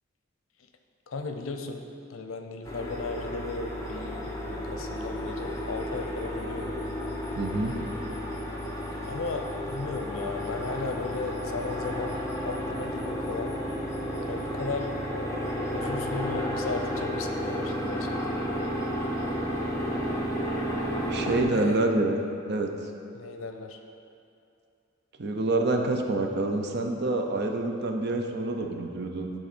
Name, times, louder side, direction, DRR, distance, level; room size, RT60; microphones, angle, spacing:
voice 1, 1.1-6.7 9.1-12.2 12.4-13.6 14.3-14.9 15.7-18.4 21.5-21.8 23.1-23.8, left 3 dB, 80° left, 5 dB, 0.6 m, -35 dB
sound 1, 2.6-21.4, equal, 15° left, 1.0 m, -32 dB
voice 2, 7.4-7.7 21.1-22.2 22.5-22.7 25.2-29.3, right 2 dB, 55° right, 3 dB, 0.6 m, -27 dB
10.5 x 3.9 x 4.3 m, 2.5 s
head